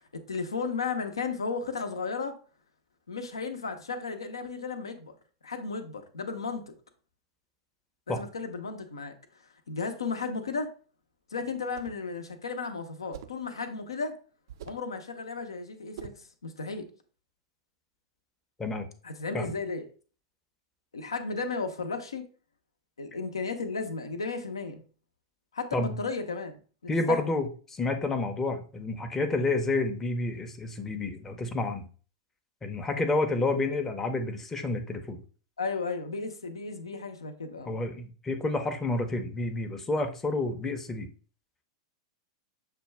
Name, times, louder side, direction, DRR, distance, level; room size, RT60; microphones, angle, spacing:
voice 1, 0.1-2.3 3.1-5.1 5.4-6.6 8.1-9.1 9.7-10.7 11.3-14.1 14.6-16.9 19.0-19.9 20.9-22.2 23.0-24.8 25.5-26.5 27.1-27.3 35.6-37.8, left 4 dB, 75° left, 8 dB, 0.7 m, -34 dB
sound 1, 11.6-12.1 13.1-13.5 14.5-14.9 16.0-16.3, right 9 dB, 60° right, 0.4 m, -44 dB
voice 2, 26.9-31.9 32.6-35.2 37.7-41.1, left 2 dB, 15° left, 5 dB, 0.7 m, -29 dB
6.7 x 2.2 x 3.3 m, 0.39 s
figure-of-eight pair, 95°, 3 cm